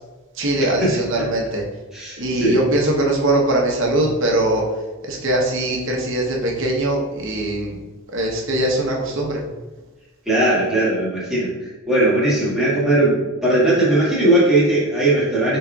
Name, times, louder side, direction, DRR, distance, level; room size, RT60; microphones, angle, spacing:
voice 1, 0.4-1.6 2.2-4.6 5.1-7.8 8.1-9.4, right 1 dB, 60° right, -1 dB, 0.9 m, -21 dB
voice 2, 1.9-2.6 10.3-11.5 11.9-15.6, right 1 dB, ahead, -9 dB, 1.3 m, -18 dB
5.4 x 3.8 x 2.3 m, 1.2 s
head